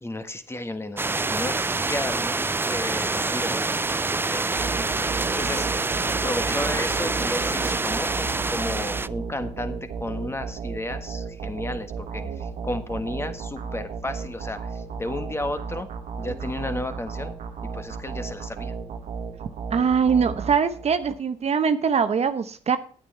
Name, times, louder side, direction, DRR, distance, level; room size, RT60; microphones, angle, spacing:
voice 1, 0.0-3.7 4.3-4.7 5.3-5.9 6.2-15.9 16.2-17.3 17.7-18.7, left 1 dB, 20° left, 9 dB, 1.4 m, -33 dB
sound 1, 1.0-9.1, right 3 dB, 15° right, 0.4 m, -26 dB
sound 2, 4.6-21.2, right 5 dB, 80° right, 1.3 m, -34 dB
voice 2, 19.7-22.8, right 6 dB, 55° right, 10 dB, 0.8 m, -22 dB
9.0 x 8.9 x 4.4 m, 0.42 s
supercardioid pair, 55°, 13 cm